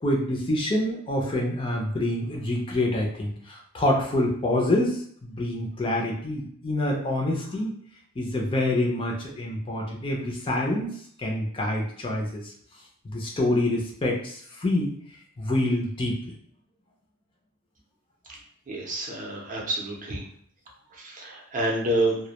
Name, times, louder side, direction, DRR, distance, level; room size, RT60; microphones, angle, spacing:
voice 1, 0.0-7.7 8.2-10.9 11.2-12.5 13.0-14.9 15.4-16.3, left 1 dB, 25° left, -1 dB, 0.4 m, -26 dB
voice 2, 18.7-20.2 21.0-22.2, right 1 dB, 40° right, -1 dB, 0.5 m, -28 dB
2.1 x 2.0 x 2.8 m, 0.63 s
head